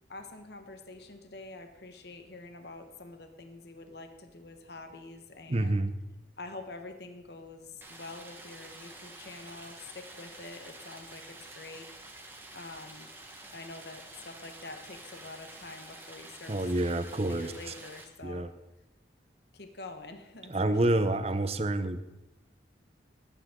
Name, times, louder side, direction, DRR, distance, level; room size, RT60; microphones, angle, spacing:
voice 1, 0.1-5.8 6.4-11.9 12.5-13.1 13.5-18.4 19.5-21.0, left 3 dB, 60° left, 6 dB, 1.2 m, -46 dB
voice 2, 5.5-5.9 16.5-17.7 18.2-18.5 20.5-22.0, right 1 dB, 30° right, 11 dB, 0.7 m, -28 dB
Stream, 7.8-18.0, right 2 dB, 10° right, 1.3 m, -49 dB
19.5 x 8.9 x 3.7 m, 0.96 s
head